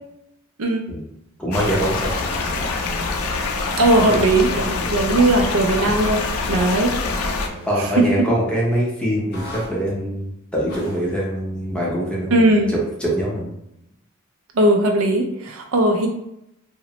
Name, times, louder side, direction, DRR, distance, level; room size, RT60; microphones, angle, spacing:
voice 1, 1.4-2.7 4.1-4.2 7.7-13.5, equal, 5° left, -5 dB, 0.6 m, -24 dB
sound 1, 1.5-7.5, left 3 dB, 85° left, 0.4 m, -25 dB
sound 2, 1.6-2.0 2.5-2.8 3.9-8.2 9.3-9.7 10.7-11.1, equal, 50° left, 0.8 m, -38 dB
voice 2, 3.8-6.9 7.8-8.1 12.3-12.7 14.5-16.1, right 1 dB, 65° right, 3 dB, 0.4 m, -18 dB
2.8 x 2.0 x 2.8 m, 0.82 s
head